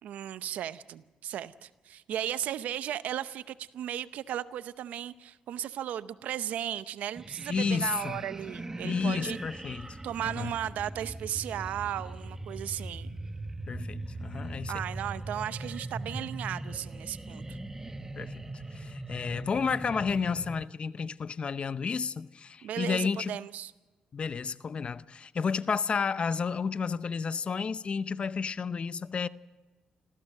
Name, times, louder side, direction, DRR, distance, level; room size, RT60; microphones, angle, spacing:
voice 1, 0.0-9.4 10.0-13.2 14.7-17.6 22.6-23.7, right 11 dB, 80° right, 0.7 m, -35 dB
sound 1, 7.1-20.6, right 2 dB, 20° right, 1.1 m, -40 dB
voice 2, 7.5-8.2 8.8-10.0 10.4-10.5 13.7-14.7 18.2-18.4 18.7-23.4 24.1-29.3, left 5 dB, 45° left, 0.7 m, -31 dB
26.0 x 15.5 x 6.6 m
cardioid pair, 70°, 3 cm